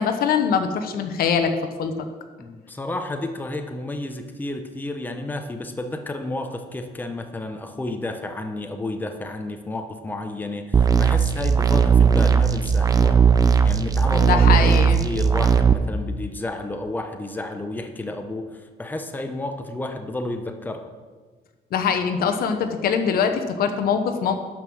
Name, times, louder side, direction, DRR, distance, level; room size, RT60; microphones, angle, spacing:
voice 1, 0.0-1.5 1.8-1.9 14.1-15.0 21.7-24.3, left 7 dB, 60° left, 7 dB, 1.1 m, -22 dB
voice 2, 2.4-20.9, left 2 dB, 10° left, 5 dB, 1.0 m, -31 dB
sound 1, 10.7-15.7, right 6 dB, 20° right, 0.6 m, -17 dB
12.0 x 5.5 x 6.4 m, 1.4 s
cardioid pair, 110°, 17 cm